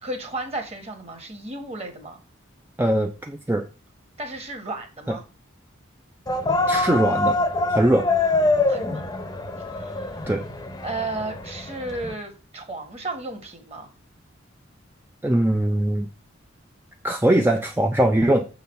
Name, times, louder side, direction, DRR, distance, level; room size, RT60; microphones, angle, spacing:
voice 1, 0.0-2.2 4.2-5.2 8.7-9.1 9.7-10.3 10.8-13.9, right 2 dB, 30° right, 5 dB, 1.6 m, -34 dB
voice 2, 2.8-3.7 5.1-5.2 6.7-7.4 7.7-8.1 10.3-10.4 15.2-16.1 17.0-18.5, right 1 dB, 10° right, 4 dB, 0.4 m, -21 dB
sound 1, 6.3-12.1, left 2 dB, 20° left, 0.7 m, -25 dB
7.3 x 3.9 x 5.7 m, 0.33 s
head